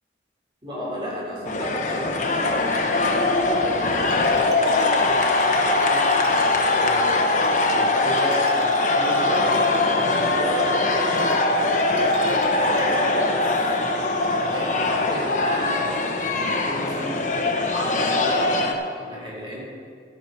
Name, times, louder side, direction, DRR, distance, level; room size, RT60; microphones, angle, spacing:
voice 1, 0.6-3.0 3.5-6.0 6.7-11.2 12.2-13.6 14.5-17.3 17.7-18.5 18.9-19.6, equal, 30° right, -5 dB, 3.6 m, -33 dB
sound 1, 1.5-18.7, left 2 dB, 45° left, 1.0 m, -21 dB
Bowed string instrument, 4.0-13.0, right 3 dB, 85° right, 2.0 m, -43 dB
12.5 x 11.0 x 4.5 m, 2.1 s
head